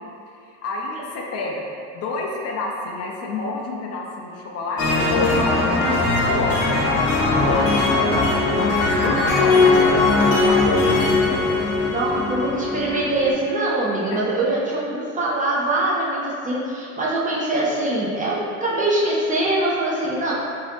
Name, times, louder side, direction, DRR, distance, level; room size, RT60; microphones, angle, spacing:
voice 1, 0.6-1.7 1.9-11.4, left 2 dB, 45° left, -1 dB, 0.4 m, -29 dB
sound 1, 4.8-13.3, left 3 dB, 65° left, 0.8 m, -19 dB
voice 2, 11.9-20.3, right 2 dB, 20° right, -6 dB, 0.4 m, -23 dB
2.7 x 2.6 x 3.3 m, 2.6 s
cardioid pair, 125°, 38 cm